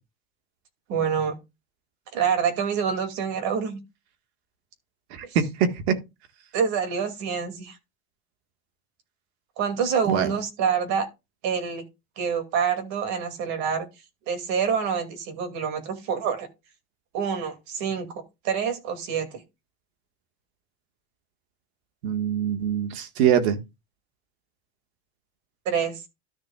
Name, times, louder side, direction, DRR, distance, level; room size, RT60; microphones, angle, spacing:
voice 1, 0.9-1.4 2.1-3.8 5.2-5.4 6.5-7.8 9.6-11.1 11.4-11.8 12.2-13.9 14.3-16.5 17.1-19.4 25.6-26.0, right 7 dB, 60° right, 2.6 m, -27 dB
voice 2, 5.1-5.9 10.1-10.3 22.0-23.6, right 8 dB, 80° right, 1.8 m, -23 dB
13.5 x 6.1 x 2.4 m
supercardioid pair, 125°, 32 cm